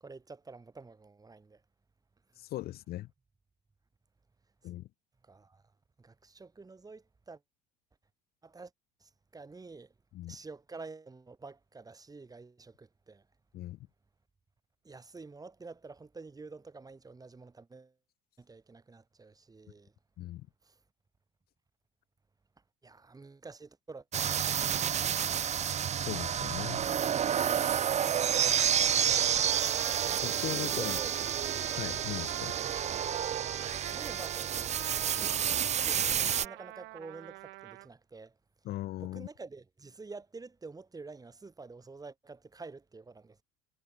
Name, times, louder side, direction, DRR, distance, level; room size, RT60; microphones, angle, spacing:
voice 1, 0.0-1.6 5.2-5.6 6.0-7.4 8.4-8.7 9.0-9.9 10.3-13.2 14.8-17.9 18.4-19.9 20.6-20.8 22.8-25.0 30.6-31.3 33.9-34.5 35.0-38.4 39.0-43.4, right 3 dB, 20° right, 6.4 m, -48 dB
voice 2, 2.4-3.1 4.6-4.9 10.1-10.4 13.5-13.8 20.2-20.5 26.0-26.9 28.9-29.0 30.2-31.0 31.7-32.6 38.6-39.3, left 15 dB, 50° left, 0.8 m, -39 dB
sound 1, 24.1-36.5, right 9 dB, 35° right, 1.0 m, -30 dB
Trumpet, 28.9-37.9, right 21 dB, 65° right, 1.4 m, -44 dB
supercardioid pair, 90°, 20 cm